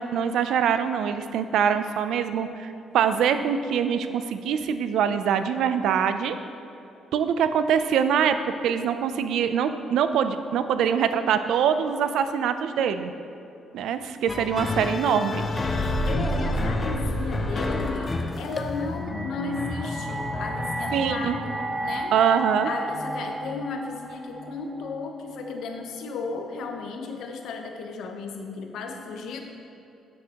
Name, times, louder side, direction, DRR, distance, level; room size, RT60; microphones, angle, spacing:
voice 1, 0.0-6.4 7.1-8.4 8.6-13.1 13.7-15.5 20.9-21.4 22.1-22.7, right 8 dB, 80° right, 10 dB, 0.4 m, -24 dB
sound 1, 14.3-22.0, left 3 dB, 30° left, 0.5 m, -31 dB
sound 2, 15.3-18.4, equal, 50° left, 1.7 m, -29 dB
voice 2, 16.0-22.1 22.6-29.4, left 4 dB, 75° left, 4 dB, 0.8 m, -35 dB
sound 3, 18.5-25.6, right 1 dB, 20° right, 0.8 m, -34 dB
9.7 x 7.8 x 2.9 m, 2.7 s
cardioid pair, 90°, 0 cm